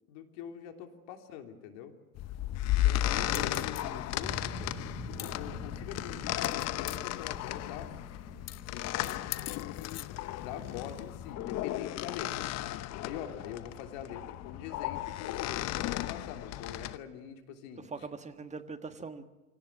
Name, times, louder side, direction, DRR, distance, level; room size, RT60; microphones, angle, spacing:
voice 1, 0.1-1.9 2.7-4.8 5.3-7.9 8.2-10.1 10.3-18.1, left 9 dB, 55° left, 5 dB, 3.2 m, -45 dB
sound 1, 2.1-17.0, left 14 dB, 35° left, 0.9 m, -34 dB
voice 2, 3.3-4.0 17.9-19.2, right 4 dB, 15° right, 9 dB, 1.6 m, -42 dB
sound 2, 4.2-13.0 13.4-13.9, left 1 dB, 5° left, 3.3 m, -47 dB
25.0 x 18.0 x 8.4 m, 1.1 s
hypercardioid pair, 95°, 43 cm